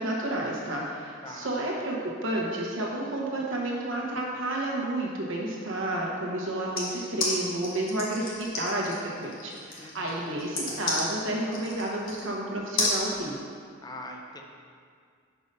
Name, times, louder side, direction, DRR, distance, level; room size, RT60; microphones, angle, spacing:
voice 1, 0.0-2.0 2.2-13.4, right 1 dB, 75° right, -3 dB, 1.0 m, -31 dB
sound 1, 6.8-12.3 12.8-13.0, left 3 dB, 85° left, 1.3 m, -31 dB
voice 2, 9.8-10.4 13.8-14.4, left 1 dB, 20° left, 2 dB, 0.5 m, -43 dB
5.4 x 4.7 x 5.3 m, 2.2 s
head